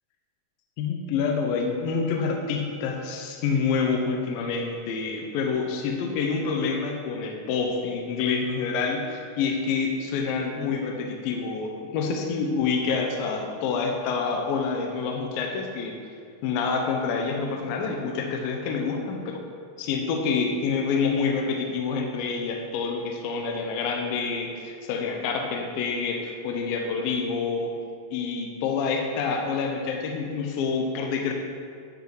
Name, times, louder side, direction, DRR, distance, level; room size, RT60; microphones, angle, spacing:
voice 1, 0.8-16.0 16.4-19.4 19.8-27.8 28.1-31.3, left 5 dB, 75° left, 2 dB, 2.3 m, -27 dB
10.0 x 4.7 x 4.7 m, 2.3 s
omnidirectional pair, 4.7 m